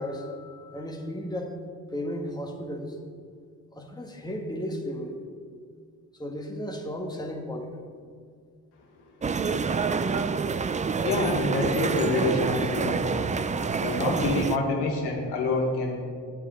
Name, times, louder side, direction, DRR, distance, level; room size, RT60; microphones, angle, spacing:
voice 1, 0.0-1.6 1.9-3.0 3.7-5.2 6.2-7.8, equal, 10° left, 1 dB, 1.4 m, -34 dB
sound 1, 9.2-14.6, right 5 dB, 20° right, 0.3 m, -27 dB
voice 2, 11.0-13.3 13.8-16.0, left 3 dB, 90° left, 0 dB, 1.5 m, -27 dB
9.9 x 9.3 x 3.8 m, 2.1 s
cardioid pair, 65°, 40 cm